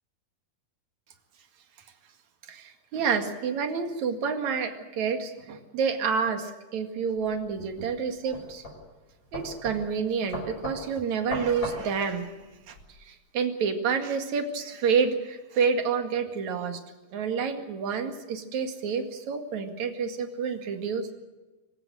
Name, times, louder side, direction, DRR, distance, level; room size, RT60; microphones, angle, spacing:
voice 1, 2.5-8.6 9.3-12.3 12.7-16.8 17.1-21.1, right 6 dB, 50° right, 6 dB, 3.0 m, -29 dB
sound 1, 7.2-12.8, left 1 dB, 25° left, 7.0 m, -39 dB
25.0 x 16.0 x 7.9 m, 1.2 s
omnidirectional pair, 4.6 m